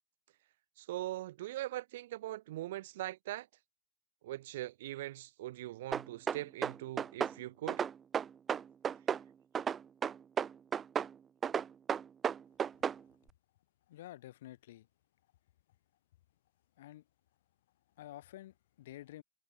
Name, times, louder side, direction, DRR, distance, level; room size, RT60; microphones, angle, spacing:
voice 1, 0.8-3.5 4.2-7.9, right 15 dB, 70° right, 1.6 m, -41 dB
sound 1, 5.9-7.4 7.7-9.2 9.5-11.1 11.4-13.0, right 7 dB, 15° right, 0.3 m, -33 dB
voice 2, 13.9-14.9 16.8-17.0 18.0-19.2, left 14 dB, 75° left, 1.4 m, -50 dB
supercardioid pair, 180°, 0 cm